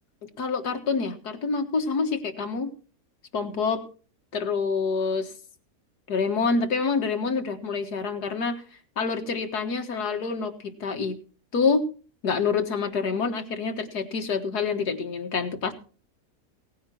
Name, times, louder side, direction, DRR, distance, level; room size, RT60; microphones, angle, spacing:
voice 1, 0.2-2.7 3.3-3.8 4.3-5.3 6.1-8.6 9.0-11.2 11.5-11.9 12.2-15.7, left 4 dB, 90° left, 5 dB, 2.2 m, -27 dB
18.0 x 9.5 x 4.5 m, 0.39 s
omnidirectional pair, 1.7 m